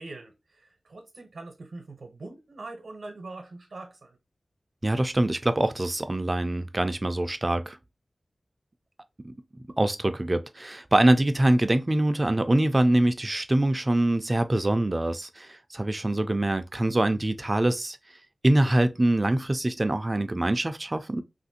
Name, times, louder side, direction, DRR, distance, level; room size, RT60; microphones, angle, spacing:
voice 1, 0.0-4.2, right 2 dB, 85° right, 0.7 m, -43 dB
voice 2, 4.8-7.8 9.2-9.3 9.8-18.0 18.4-21.2, right 1 dB, 30° right, 0.4 m, -24 dB
3.0 x 2.5 x 2.6 m
wide cardioid pair, 75°, 0 cm